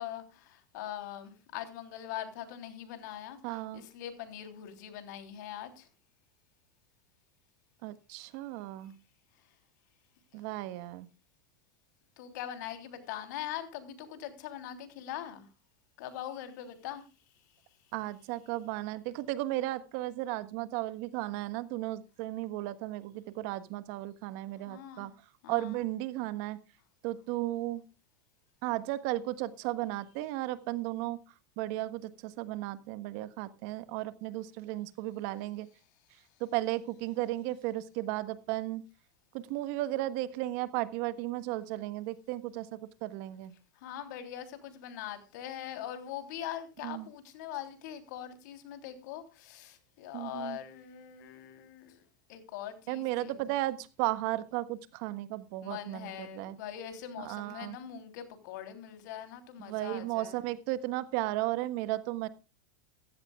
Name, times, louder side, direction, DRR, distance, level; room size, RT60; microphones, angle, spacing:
voice 1, 0.0-5.9 12.2-15.5 16.0-17.0 24.6-25.1 25.4-25.8 43.8-52.0 52.3-53.3 55.6-60.4, left 11 dB, 70° left, 8 dB, 3.4 m, -42 dB
voice 2, 3.4-3.8 7.8-8.9 10.3-11.1 17.9-25.1 25.5-26.6 27.0-27.8 28.6-31.2 31.6-35.7 36.4-38.8 39.3-43.5 46.8-47.1 50.1-50.6 52.9-56.6 57.2-57.8 59.6-62.3, right 16 dB, 60° right, 13 dB, 1.4 m, -35 dB
15.5 x 15.0 x 2.4 m, 0.32 s
hypercardioid pair, 115°, 10 cm